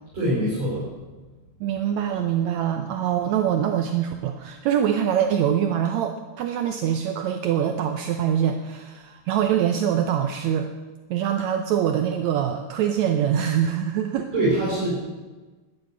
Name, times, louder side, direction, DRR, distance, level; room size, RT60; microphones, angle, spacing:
voice 1, 0.1-0.8 14.3-15.0, right 1 dB, 45° right, -8 dB, 6.6 m, -23 dB
voice 2, 1.6-10.7 11.1-14.3, right 9 dB, 80° right, 6 dB, 1.6 m, -24 dB
12.0 x 9.5 x 9.6 m, 1.2 s
omnidirectional pair, 4.2 m